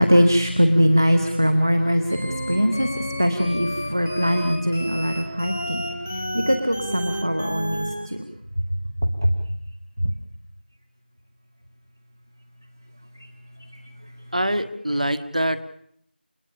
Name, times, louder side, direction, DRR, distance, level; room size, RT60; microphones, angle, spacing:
voice 1, 0.0-5.8 6.1-8.2 9.0-9.4 10.0-10.1, equal, 20° right, 7 dB, 0.9 m, -21 dB
sound 1, 2.1-7.9, equal, 10° left, 1.0 m, -30 dB
voice 2, 14.3-15.6, right 1 dB, 40° right, 11 dB, 1.4 m, -24 dB
29.5 x 16.5 x 7.1 m, 0.68 s
figure-of-eight pair, 180°, 6 cm